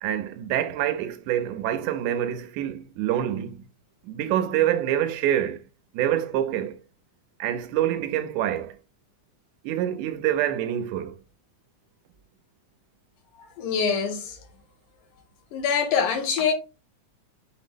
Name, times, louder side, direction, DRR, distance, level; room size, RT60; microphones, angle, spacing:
voice 1, 0.0-3.6 4.0-5.6 5.9-6.8 7.4-8.8 9.6-11.2, right 11 dB, 85° right, 2.0 m, -26 dB
voice 2, 13.6-14.4 15.5-16.5, left 6 dB, 80° left, 2.4 m, -24 dB
5.7 x 2.0 x 3.3 m
omnidirectional pair, 3.6 m